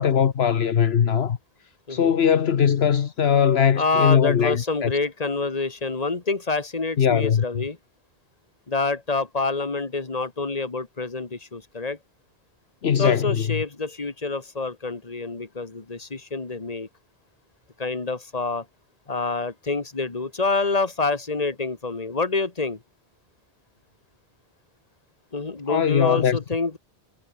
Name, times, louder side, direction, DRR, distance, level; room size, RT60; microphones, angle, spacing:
voice 1, 0.0-1.4 1.9-4.9 7.0-7.4 12.8-13.4 25.7-26.4, left 8 dB, 70° left, 1.2 m, -20 dB
voice 2, 1.9-2.2 3.8-7.8 8.7-12.0 13.0-16.9 17.8-18.7 19.1-22.8 25.3-26.8, left 3 dB, 35° left, 2.0 m, -27 dB
omnidirectional pair, 1.1 m